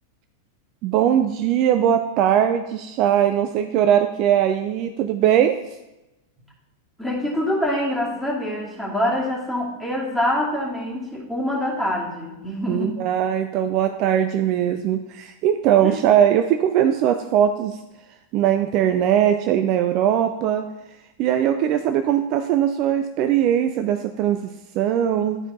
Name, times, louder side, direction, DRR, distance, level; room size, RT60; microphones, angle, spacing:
voice 1, 0.8-5.5 12.7-17.8 18.3-20.6 21.2-25.4, right 10 dB, 40° right, 7 dB, 0.4 m, -20 dB
voice 2, 7.0-13.0 15.8-15.9, left 1 dB, ahead, -5 dB, 2.4 m, -25 dB
10.5 x 4.5 x 3.9 m, 0.95 s
figure-of-eight pair, 90°, 0 cm